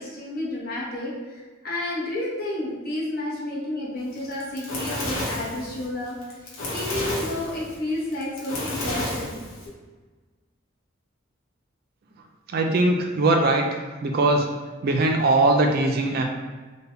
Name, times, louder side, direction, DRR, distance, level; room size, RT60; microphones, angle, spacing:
voice 1, 0.0-6.2 6.7-9.4, left 1 dB, 50° left, -6 dB, 0.9 m, -31 dB
Fire, 4.2-9.7, left 1 dB, 85° left, 1.0 m, -31 dB
voice 2, 12.5-14.5 14.8-16.2, right 2 dB, 50° right, 3 dB, 0.3 m, -21 dB
3.3 x 2.2 x 3.3 m, 1.3 s
head